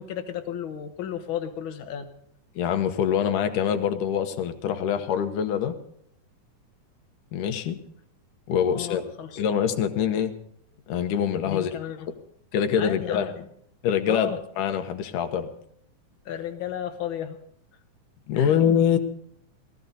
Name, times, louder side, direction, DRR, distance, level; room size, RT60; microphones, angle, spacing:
voice 1, 0.0-2.1 8.6-9.4 11.5-12.1 12.8-13.5 14.1-14.4 16.2-17.4 18.3-18.6, left 9 dB, 65° left, 7 dB, 1.2 m, -33 dB
voice 2, 2.6-5.8 7.3-7.8 8.5-9.1 9.4-10.3 10.9-11.7 12.5-13.3 13.8-15.5 18.3-19.0, left 8 dB, 80° left, 8 dB, 2.6 m, -24 dB
19.0 x 14.5 x 4.1 m, 0.69 s
omnidirectional pair, 3.7 m